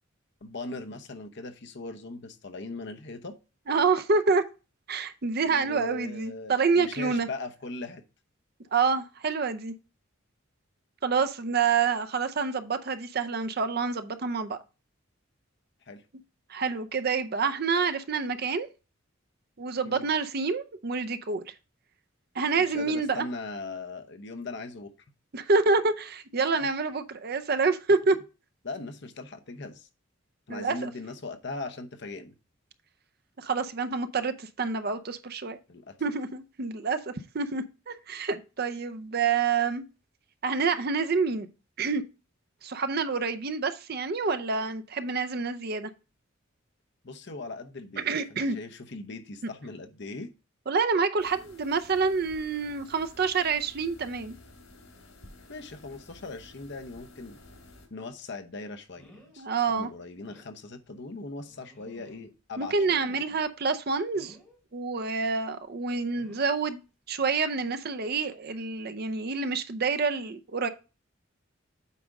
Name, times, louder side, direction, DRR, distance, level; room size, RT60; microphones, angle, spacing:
voice 1, 0.4-3.4 5.5-8.0 15.9-16.0 19.8-20.1 22.6-24.9 28.6-29.9 30.5-32.4 35.7-36.0 47.0-50.3 55.5-57.4 57.9-63.1, left 3 dB, 60° left, 0.9 m, -40 dB
voice 2, 3.7-4.4 4.9-7.3 8.7-9.7 11.0-14.6 16.5-18.7 19.6-21.5 22.3-23.3 25.3-28.2 30.5-30.9 33.4-35.6 36.0-39.8 40.4-41.5 41.8-42.0 42.6-45.9 48.0-48.6 50.7-54.4 59.4-59.9 62.6-64.4 64.7-66.8 67.1-70.7, right 4 dB, 50° right, 0.6 m, -27 dB
sound 1, 51.2-57.9, left 2 dB, 85° left, 3.0 m, -52 dB
sound 2, 58.0-58.2 58.9-59.4 59.8-59.9 60.3-60.5 61.4-62.3 62.8-63.5 64.1-64.6 66.1-66.6 67.7-67.9 68.3-68.4, equal, 5° left, 3.4 m, -55 dB
8.5 x 5.1 x 3.6 m
head